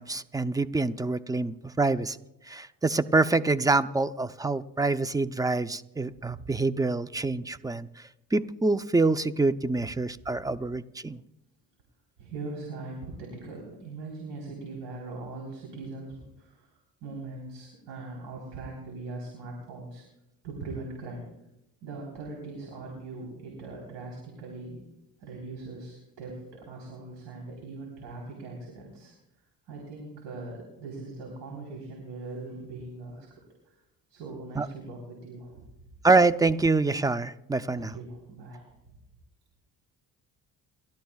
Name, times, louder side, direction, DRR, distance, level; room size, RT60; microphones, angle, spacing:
voice 1, 0.0-2.2 2.5-7.9 8.3-11.2 34.6-34.7 36.0-37.9, right 3 dB, 10° right, 13 dB, 0.6 m, -26 dB
voice 2, 12.2-20.0 20.4-21.3 21.8-24.8 25.2-29.1 29.7-33.3 33.7-33.8 34.1-35.6 37.7-39.0, right 3 dB, 80° right, -1 dB, 4.0 m, -41 dB
29.0 x 13.0 x 2.4 m, 0.87 s
supercardioid pair, 60°, 41 cm